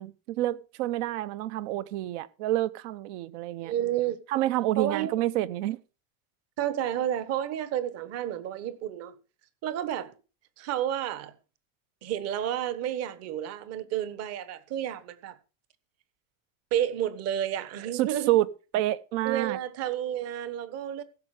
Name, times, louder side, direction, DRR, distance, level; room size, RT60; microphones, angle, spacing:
voice 1, 0.0-3.7 4.3-5.8 17.9-18.5 18.7-19.6, right 15 dB, 60° right, 1.0 m, -28 dB
voice 2, 3.6-4.2 4.8-5.1 6.6-9.2 9.6-10.1 10.6-11.3 12.0-15.3 16.7-18.3 19.2-21.0, right 11 dB, 35° right, 1.3 m, -31 dB
16.0 x 7.5 x 4.9 m
supercardioid pair, 160°, 41 cm